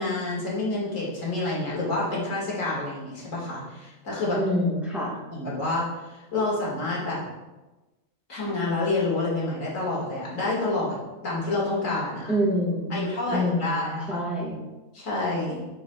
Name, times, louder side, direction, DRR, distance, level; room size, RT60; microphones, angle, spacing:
voice 1, 0.0-4.4 5.3-5.9 6.3-7.3 8.3-11.0 11.2-12.4 12.9-14.2 14.9-15.6, left 2 dB, 70° left, -5 dB, 2.3 m, -28 dB
voice 2, 4.3-5.2 12.3-13.0 13.3-14.6, equal, ahead, -5 dB, 1.3 m, -26 dB
9.2 x 6.1 x 2.3 m, 1.1 s
omnidirectional pair, 1.4 m